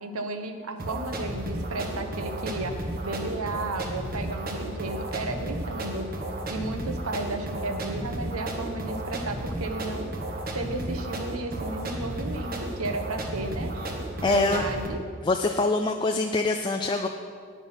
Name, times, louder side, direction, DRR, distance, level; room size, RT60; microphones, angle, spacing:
voice 1, 0.0-6.1 6.5-10.1 10.5-13.7 14.2-15.0, right 2 dB, 90° right, 6 dB, 1.1 m, -33 dB
sound 1, 0.8-14.9, right 1 dB, 40° right, 1.3 m, -33 dB
voice 2, 14.2-14.7 15.3-17.1, left 3 dB, 20° left, 4 dB, 0.4 m, -24 dB
10.0 x 9.5 x 5.7 m, 2.1 s
head